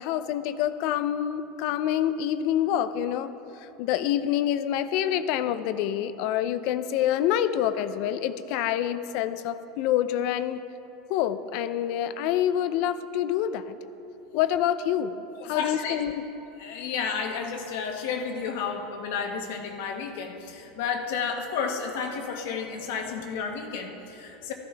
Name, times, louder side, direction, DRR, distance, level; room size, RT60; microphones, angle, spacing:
voice 1, 0.0-3.3 3.6-10.6 11.1-13.8 14.3-16.2, left 11 dB, 55° left, 12 dB, 0.5 m, -27 dB
voice 2, 15.5-15.9 16.6-24.5, left 6 dB, 75° left, 3 dB, 1.4 m, -32 dB
15.0 x 13.5 x 3.4 m, 3.0 s
supercardioid pair, 155°, 0 cm